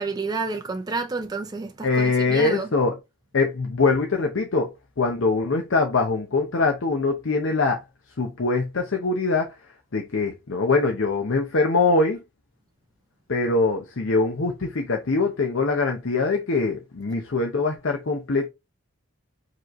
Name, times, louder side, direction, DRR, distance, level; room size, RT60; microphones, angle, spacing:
voice 1, 0.0-2.7, right 3 dB, 20° right, 0.4 m, -30 dB
voice 2, 1.8-2.9 3.3-4.7 5.0-7.8 8.2-9.5 9.9-12.2 13.3-18.5, left 3 dB, 65° left, 0.7 m, -23 dB
4.6 x 3.1 x 3.0 m
head